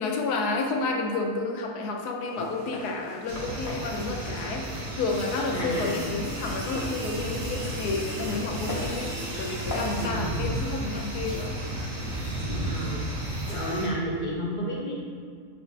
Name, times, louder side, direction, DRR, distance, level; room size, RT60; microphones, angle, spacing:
voice 1, 0.0-11.6, left 3 dB, 80° left, 2 dB, 1.3 m, -30 dB
Walk footsteps, 2.2-10.0, left 2 dB, 60° left, 1.2 m, -41 dB
sound 1, 3.3-13.9, right 1 dB, 75° right, 2.0 m, -33 dB
sound 2, 5.1-10.1, right 2 dB, 45° right, 0.5 m, -40 dB
voice 2, 5.5-6.1 10.0-10.6 12.6-13.1 13.5-14.9, right 1 dB, 30° left, -5 dB, 1.2 m, -32 dB
5.1 x 4.1 x 4.6 m, 2.1 s
omnidirectional pair, 1.7 m